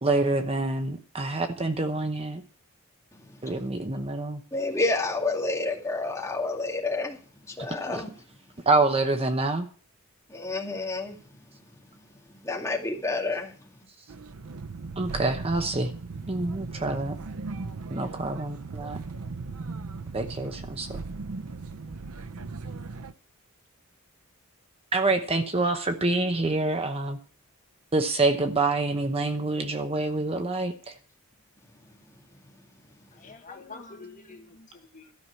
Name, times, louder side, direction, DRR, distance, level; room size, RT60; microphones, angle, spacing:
voice 1, 0.0-2.4 3.4-4.4 7.6-8.0 8.7-9.7 15.0-15.9 16.3-17.2 17.9-19.0 20.1-21.0 24.9-27.2 27.9-30.9, right 2 dB, 25° right, 7 dB, 0.8 m, -26 dB
voice 2, 3.1-3.6 4.5-7.2 7.5-8.1 10.3-11.2 11.9-12.0 12.3-13.6, left 3 dB, 15° left, -1 dB, 2.3 m, -30 dB
sound 1, 14.1-23.1, right 3 dB, 80° right, 0.7 m, -38 dB
voice 3, 33.1-35.1, left 3 dB, 35° left, 4 dB, 1.6 m, -46 dB
13.0 x 6.0 x 8.3 m, 0.42 s
head